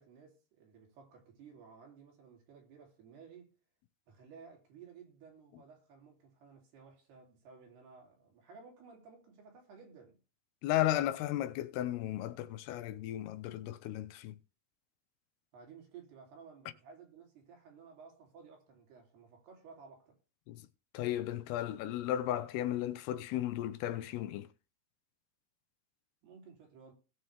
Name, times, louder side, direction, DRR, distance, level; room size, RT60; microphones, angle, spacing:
voice 1, 0.0-3.5 4.1-10.2 10.7-11.1 15.5-20.2 26.2-26.9, right 5 dB, 75° right, 5.4 m, -56 dB
voice 2, 10.6-14.4 20.5-20.6 20.9-24.5, left 13 dB, 80° left, 2.7 m, -34 dB
19.0 x 6.8 x 3.5 m
omnidirectional pair, 4.7 m